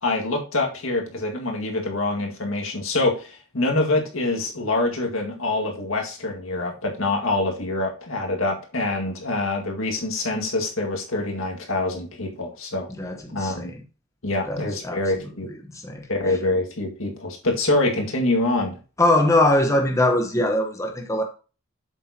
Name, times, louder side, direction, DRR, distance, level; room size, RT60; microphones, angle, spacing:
voice 1, 0.0-12.9 13.3-13.7 14.2-15.5 16.1-18.8, left 2 dB, 70° left, 1 dB, 2.0 m, -25 dB
voice 2, 13.0-13.8 14.4-15.0 15.4-16.4 19.0-21.2, left 1 dB, 15° left, 2 dB, 0.9 m, -22 dB
7.9 x 7.5 x 2.9 m, 0.35 s
head